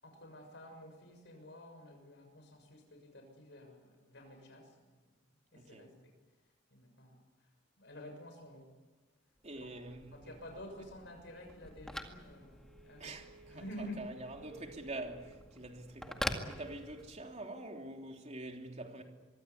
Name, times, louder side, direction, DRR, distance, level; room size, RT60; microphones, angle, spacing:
voice 1, 0.0-4.9 5.5-6.1 6.7-7.2 7.8-8.7 9.6-9.8 10.1-13.1 13.5-14.0, left 1 dB, 65° left, 6.5 m, -50 dB
voice 2, 5.5-5.9 9.4-10.3 13.0-19.0, right 2 dB, 40° right, 3.4 m, -46 dB
Telephone, 9.4-17.3, equal, 5° left, 2.0 m, -46 dB
25.0 x 23.0 x 8.4 m
head